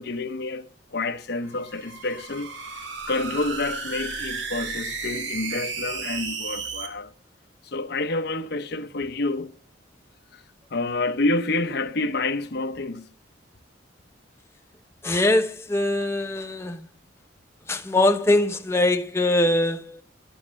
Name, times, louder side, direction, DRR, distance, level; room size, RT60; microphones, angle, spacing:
voice 1, 0.0-2.5 3.1-7.1 7.6-9.5 10.3-10.4 10.7-13.1, left 2 dB, 60° left, 0.9 m, -28 dB
sound 1, 1.4-6.9, right 4 dB, 85° right, 2.4 m, -33 dB
voice 2, 15.0-16.8 17.7-20.0, left 1 dB, 15° left, 1.0 m, -22 dB
12.5 x 8.7 x 7.4 m
head